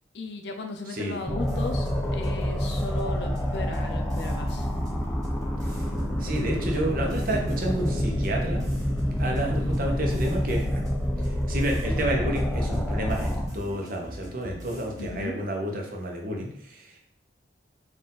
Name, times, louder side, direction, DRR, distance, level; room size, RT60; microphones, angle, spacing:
voice 1, 0.1-4.7 15.0-15.4, left 2 dB, 65° left, 5 dB, 0.6 m, -36 dB
voice 2, 0.9-1.3 6.2-8.6 9.2-10.9 11.5-17.0, right 1 dB, 50° right, 1 dB, 0.8 m, -30 dB
sound 1, 1.3-13.5, equal, 10° left, 0.4 m, -28 dB
sound 2, 1.4-15.2, equal, 20° right, 0.9 m, -42 dB
4.2 x 2.5 x 3.8 m, 0.69 s
head